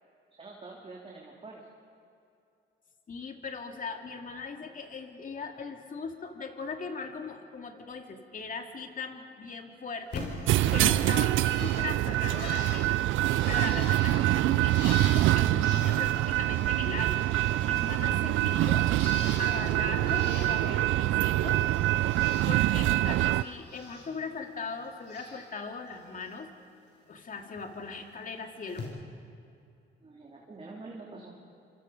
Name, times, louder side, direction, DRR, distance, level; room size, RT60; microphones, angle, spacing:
voice 1, 0.3-1.6 30.0-31.3, right 3 dB, 30° right, -3 dB, 3.4 m, -46 dB
voice 2, 3.1-13.0 13.5-17.2 17.6-21.6 22.3-26.5 27.1-28.8, left 4 dB, 45° left, 3 dB, 2.6 m, -39 dB
Bird, 10.1-16.9 17.2-19.7 20.0-20.9 21.2-22.5 22.8-24.1 24.4-25.5 25.8-26.3 27.6-27.7 28.7-28.8, left 3 dB, 65° left, 5.8 m, -43 dB
sound 1, 10.5-23.4, right 15 dB, 80° right, 0.5 m, -25 dB
26.5 x 26.5 x 5.3 m, 2.5 s
cardioid pair, 90°, 20 cm